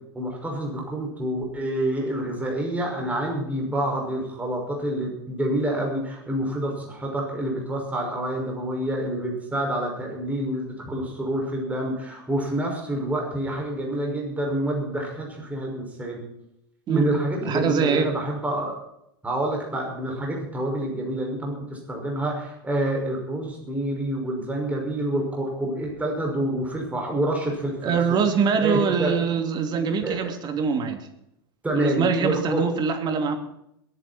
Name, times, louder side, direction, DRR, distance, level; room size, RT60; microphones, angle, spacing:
voice 1, 0.1-16.2 16.9-18.7 19.2-28.2 28.6-29.2 30.0-30.4 31.6-32.6, right 1 dB, 10° right, 0 dB, 5.7 m, -27 dB
voice 2, 17.4-18.1 27.8-31.1 31.7-33.4, right 6 dB, 35° right, 7 dB, 2.8 m, -23 dB
22.0 x 10.0 x 4.3 m, 0.78 s
hypercardioid pair, 95°, 12 cm